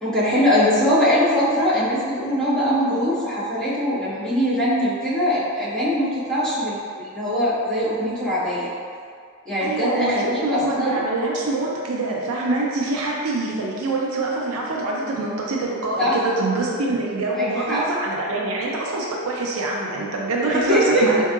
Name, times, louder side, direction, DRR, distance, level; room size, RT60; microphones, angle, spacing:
voice 1, 0.0-8.7 9.4-11.0 16.0-16.2 17.4-17.8 20.5-21.1, equal, 5° left, -15 dB, 1.5 m, -22 dB
voice 2, 9.6-21.2, right 2 dB, 70° right, -2 dB, 0.5 m, -25 dB
4.5 x 2.7 x 2.4 m, 2.1 s
head